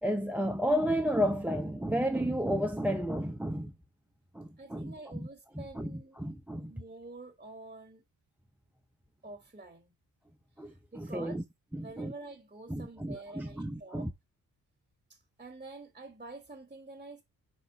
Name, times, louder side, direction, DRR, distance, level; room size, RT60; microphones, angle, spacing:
voice 1, 0.0-3.7 4.3-5.3 5.5-6.7 10.6-11.4 11.7-12.1 12.7-14.1, equal, 5° right, 0.6 m, -32 dB
voice 2, 4.6-6.2 6.6-8.0 9.2-9.9 10.9-11.4 11.8-14.1 15.1-17.2, right 2 dB, 20° right, 1.6 m, -47 dB
5.1 x 4.2 x 4.9 m
cardioid pair, 85°, 37 cm